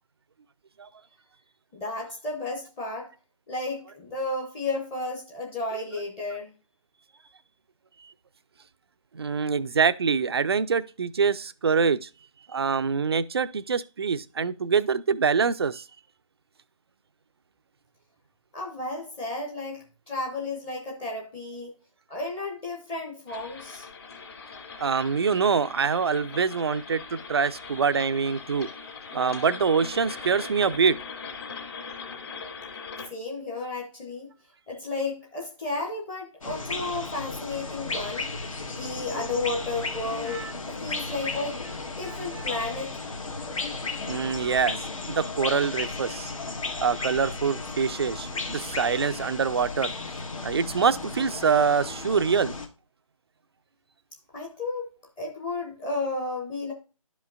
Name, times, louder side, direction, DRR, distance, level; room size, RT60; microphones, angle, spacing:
voice 1, 1.7-3.1 3.5-6.5 18.5-21.7 22.1-23.9 33.1-34.3 34.7-38.3 38.7-41.6 41.8-43.0 54.3-54.8 55.2-56.7, left 2 dB, 10° left, 0.8 m, -33 dB
voice 2, 9.1-12.1 12.5-15.8 24.8-28.7 29.1-31.0 40.3-40.5 42.0-42.6 44.1-46.3 46.8-49.9 50.4-52.5, right 5 dB, 45° right, 0.5 m, -25 dB
sound 1, 23.3-33.1, left 5 dB, 45° left, 2.4 m, -41 dB
sound 2, 36.4-52.7, left 3 dB, 70° left, 1.7 m, -34 dB
11.5 x 5.2 x 2.3 m
figure-of-eight pair, 150°, 18 cm